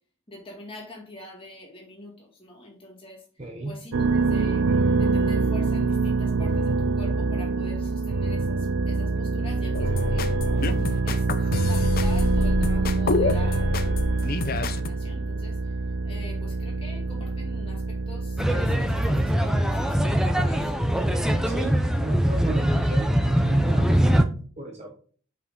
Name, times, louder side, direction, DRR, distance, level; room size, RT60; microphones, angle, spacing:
voice 1, 0.3-3.2 3.6-4.7 5.0-13.7 14.6-15.6 16.0-20.7, left 1 dB, 25° left, -1 dB, 2.1 m, -44 dB
voice 2, 3.4-3.7 21.5-21.7 22.0-25.0, right 2 dB, 30° right, 1 dB, 1.0 m, -34 dB
sound 1, 3.9-20.5, right 3 dB, 70° right, 0.4 m, -25 dB
sound 2, 9.7-14.9, left 3 dB, 45° left, 0.5 m, -27 dB
sound 3, 18.4-24.2, equal, 5° right, 0.5 m, -22 dB
5.6 x 5.4 x 3.8 m, 0.43 s
head